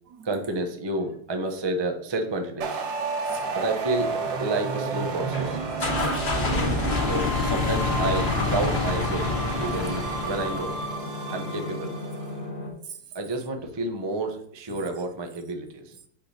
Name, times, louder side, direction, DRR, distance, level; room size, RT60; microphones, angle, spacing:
voice 1, 0.2-2.8 3.5-4.1 4.4-5.6 7.0-9.3 9.6-10.8 11.3-12.0 13.1-16.0, right 2 dB, 35° right, 0.4 m, -30 dB
sound 1, 2.6-12.2, right 4 dB, 85° right, 1.7 m, -31 dB
voice 2, 3.2-3.6 5.9-6.9 9.3-9.4 12.8-13.0 14.7-15.0, right 8 dB, 70° right, 1.1 m, -45 dB
sound 2, 5.3-10.9, left 3 dB, 30° left, 1.1 m, -27 dB
sound 3, 6.1-12.7, left 2 dB, 90° left, 2.1 m, -37 dB
6.4 x 4.2 x 6.4 m
omnidirectional pair, 2.0 m